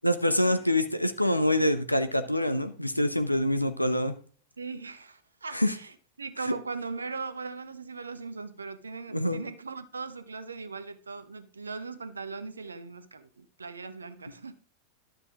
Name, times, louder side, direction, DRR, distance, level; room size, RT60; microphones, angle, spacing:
voice 1, 0.0-4.2 5.5-5.7 6.5-6.6 9.1-9.4, left 1 dB, 90° left, 0.8 m, -25 dB
voice 2, 4.6-14.5, right 4 dB, 75° right, 0.9 m, -39 dB
11.5 x 6.8 x 3.7 m
figure-of-eight pair, 90°, 0 cm